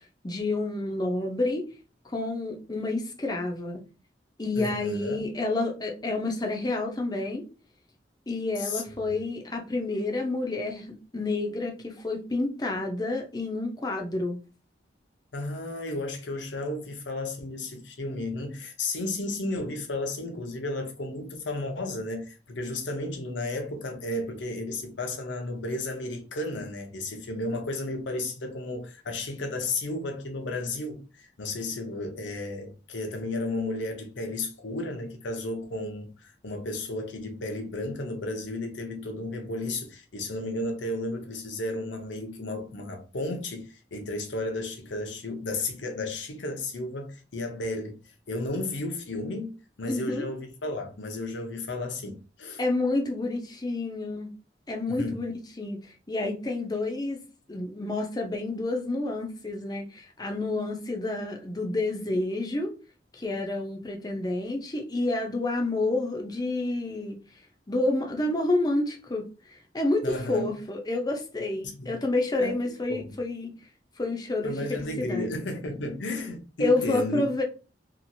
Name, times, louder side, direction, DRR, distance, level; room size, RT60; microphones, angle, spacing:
voice 1, 0.2-1.6 2.0-3.8 4.4-7.4 8.3-14.4 49.9-50.2 52.6-54.3 54.7-55.3 55.6-57.2 57.5-62.7 63.1-67.2 67.7-73.5 74.0-75.3 76.6-77.4, left 2 dB, 20° left, 0.5 m, -29 dB
voice 2, 4.6-5.2 8.6-9.1 15.3-52.6 54.9-55.2 70.0-70.5 71.6-71.9 72.4-73.2 74.4-77.3, left 2 dB, 80° left, 0.7 m, -33 dB
2.9 x 2.4 x 2.6 m
head